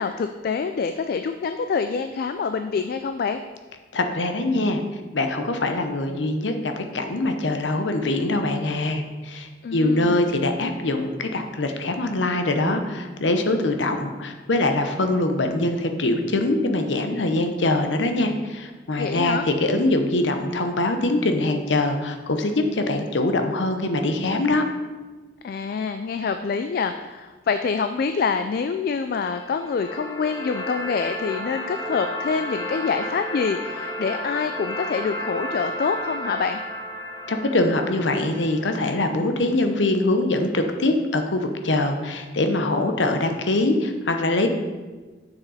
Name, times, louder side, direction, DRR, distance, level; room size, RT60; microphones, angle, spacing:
voice 1, 0.0-3.4 9.6-10.4 19.0-19.5 25.4-36.6, left 5 dB, 55° left, 8 dB, 0.3 m, -26 dB
voice 2, 3.9-4.8 5.1-24.6 37.3-44.5, left 2 dB, 80° left, 6 dB, 0.8 m, -23 dB
sound 1, 29.2-39.2, left 1 dB, 20° left, 1.1 m, -33 dB
7.3 x 6.3 x 4.1 m, 1.3 s
head